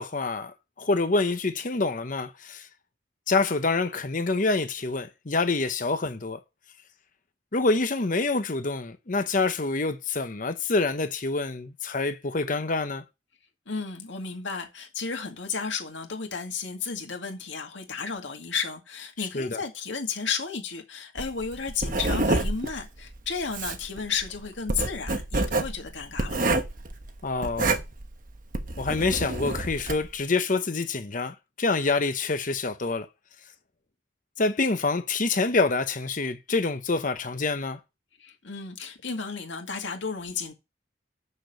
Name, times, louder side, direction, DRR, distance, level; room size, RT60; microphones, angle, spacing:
voice 1, 0.0-2.7 3.3-6.4 7.5-13.0 19.2-19.6 27.2-27.8 28.8-33.1 34.4-37.8, left 3 dB, 45° left, 0.8 m, -26 dB
voice 2, 13.7-26.4 38.2-40.5, left 5 dB, 75° left, 2.2 m, -33 dB
Writing, 21.2-30.1, right 2 dB, 45° right, 1.1 m, -28 dB
6.8 x 6.5 x 6.5 m
head